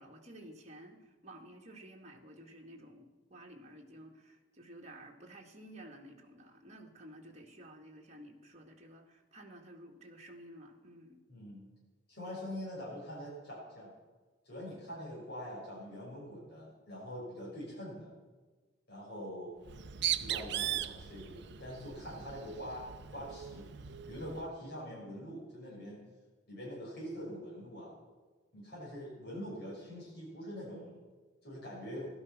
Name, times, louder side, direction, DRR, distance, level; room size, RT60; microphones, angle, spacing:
voice 1, 0.0-11.2, right 1 dB, 35° right, 0 dB, 2.1 m, -53 dB
voice 2, 11.3-11.7 12.1-13.9 14.4-18.1 18.9-19.5 20.0-23.7 24.1-26.0 26.5-27.9 28.5-31.0 31.4-32.1, equal, 60° left, -5 dB, 6.5 m, -44 dB
Bird, 19.6-24.5, right 11 dB, 65° right, 0.6 m, -38 dB
16.0 x 12.5 x 6.0 m, 1.3 s
head